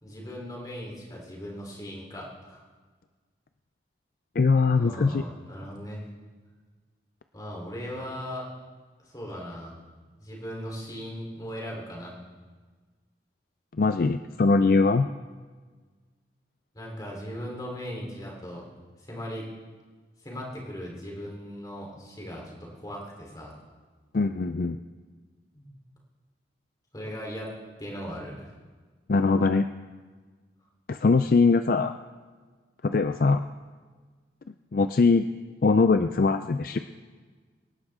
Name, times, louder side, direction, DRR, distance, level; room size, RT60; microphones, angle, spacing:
voice 1, 0.0-2.6 4.7-6.1 7.3-8.5 9.0-9.8 10.2-12.2 16.7-18.7 19.0-19.5 20.2-23.5 25.5-25.7 26.9-27.5 27.8-28.5, equal, 20° left, -2 dB, 3.6 m, -38 dB
voice 2, 4.4-5.2 13.8-15.1 24.1-24.8 29.1-29.7 30.9-31.9 32.8-33.4 34.7-35.3 35.6-36.8, left 4 dB, 50° left, 9 dB, 0.4 m, -21 dB
25.0 x 11.5 x 3.7 m, 1.4 s
head